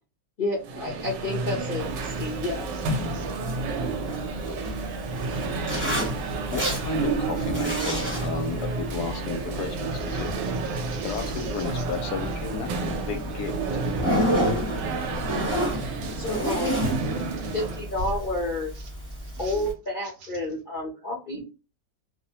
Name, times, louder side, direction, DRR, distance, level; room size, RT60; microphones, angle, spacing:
voice 1, 0.4-2.7 16.2-16.7 17.5-18.7 19.4-21.4, left 2 dB, 50° left, 0.6 m, -30 dB
sound 1, 0.6-17.9, right 4 dB, 90° right, 1.2 m, -31 dB
sound 2, 1.5-18.0, right 4 dB, 50° right, 0.9 m, -48 dB
Zipper (clothing), 1.8-19.7, equal, 10° right, 0.7 m, -32 dB
voice 2, 2.7-4.0 9.9-11.8 17.2-17.6 18.0-18.1 18.7-19.7 20.0-20.3, right 3 dB, 75° right, 1.2 m, -47 dB
voice 3, 6.5-10.3 11.0-13.7, left 4 dB, 75° left, 1.1 m, -33 dB
2.8 x 2.1 x 2.7 m
omnidirectional pair, 1.9 m